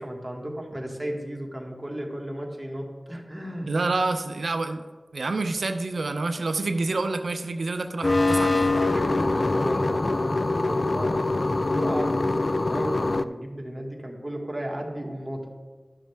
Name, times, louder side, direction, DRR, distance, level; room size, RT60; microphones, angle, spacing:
voice 1, 0.0-3.7 8.6-15.4, right 1 dB, 15° right, 0 dB, 1.6 m, -34 dB
voice 2, 3.7-4.8 5.1-8.7, right 3 dB, 80° right, 7 dB, 0.5 m, -27 dB
sound 1, 8.0-13.2, left 2 dB, 50° left, 0.3 m, -24 dB
11.5 x 6.3 x 3.4 m, 1.4 s
wide cardioid pair, 50°, 0 cm